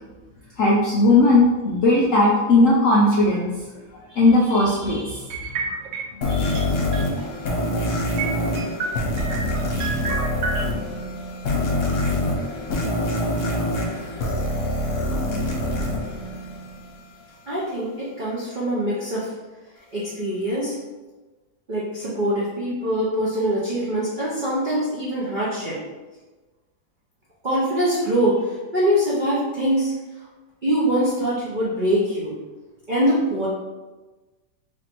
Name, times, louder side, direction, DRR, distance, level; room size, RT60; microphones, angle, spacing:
voice 1, 0.6-3.5 4.1-5.3 6.2-6.6, left 2 dB, 80° left, -4 dB, 0.7 m, -18 dB
sound 1, 5.3-6.3 6.5-7.3 7.6-7.7 8.2-10.6, right 4 dB, 70° right, 0.9 m, -29 dB
sound 2, 6.2-17.0, left 1 dB, 60° left, 1.1 m, -25 dB
voice 2, 17.5-19.3 19.9-20.8 21.7-25.8 27.4-29.9 30.6-32.3 32.9-33.5, equal, 85° right, -7 dB, 0.4 m, -23 dB
3.3 x 2.6 x 4.3 m, 1.2 s
omnidirectional pair, 2.0 m